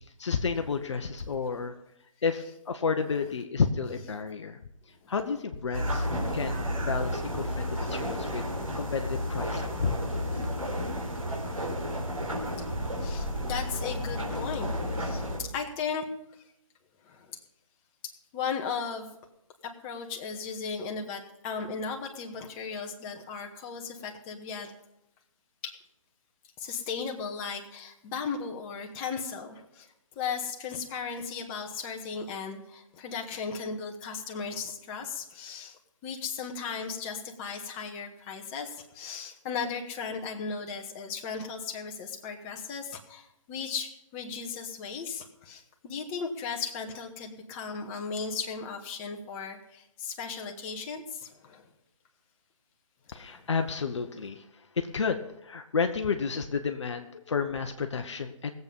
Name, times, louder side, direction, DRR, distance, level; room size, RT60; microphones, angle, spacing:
voice 1, 0.2-1.7 2.2-4.6 5.1-6.1 6.3-8.5 8.7-10.0 53.1-58.5, left 5 dB, 60° left, 6 dB, 1.1 m, -31 dB
voice 2, 2.9-3.3 3.9-4.1 5.0-5.2 5.9-6.1 6.3-6.7 7.8-7.9 10.3-10.4 12.6-12.7 13.0-14.7 15.0-16.0 17.0-17.4 18.0-19.1 19.6-24.7 25.6-25.7 26.6-51.7 53.1-53.6, left 5 dB, 20° left, 2 dB, 1.6 m, -36 dB
sound 1, 5.7-15.4, equal, 90° right, 4.1 m, -32 dB
18.5 x 8.0 x 5.4 m, 0.84 s
figure-of-eight pair, 140°, 17 cm